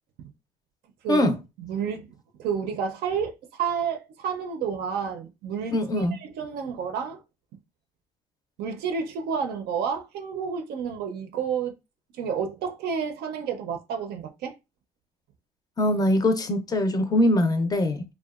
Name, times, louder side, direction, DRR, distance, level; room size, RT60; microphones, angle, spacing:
voice 1, 1.6-7.2 8.6-11.7 12.2-14.5, right 6 dB, 70° right, 0.4 m, -30 dB
voice 2, 5.7-6.1 15.8-18.0, left 1 dB, 20° left, 0.5 m, -22 dB
2.7 x 2.1 x 2.3 m
cardioid pair, 110°, 17 cm